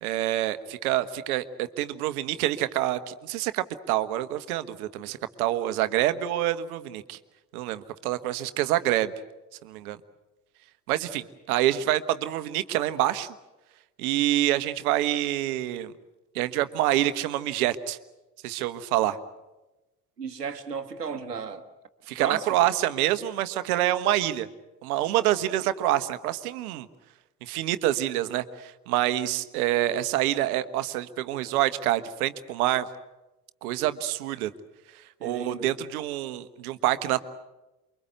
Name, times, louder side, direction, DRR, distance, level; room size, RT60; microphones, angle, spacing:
voice 1, 0.0-7.2 7.5-9.1 9.6-10.0 10.9-13.3 14.0-15.9 16.3-18.0 18.4-19.2 22.1-24.5 24.8-26.9 27.4-32.8 33.6-34.5 35.2-37.2, right 14 dB, 65° right, 1.4 m, -26 dB
voice 2, 20.2-21.7 22.2-22.5 35.2-35.7, right 5 dB, 85° right, 1.5 m, -34 dB
29.0 x 23.0 x 8.1 m
figure-of-eight pair, 55°, 47 cm